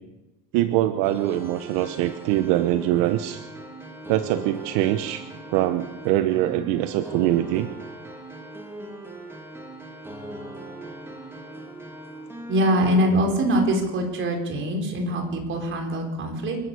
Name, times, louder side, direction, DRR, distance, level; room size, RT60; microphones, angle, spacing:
voice 1, 0.5-3.4 4.1-5.2 5.5-7.7, right 14 dB, 70° right, 10 dB, 1.0 m, -23 dB
sound 1, 1.0-13.0, right 1 dB, 5° right, 2.8 m, -39 dB
voice 2, 12.5-16.6, equal, 30° right, 2 dB, 4.5 m, -23 dB
28.5 x 11.5 x 8.3 m, 1.1 s
cardioid pair, 160°, 37 cm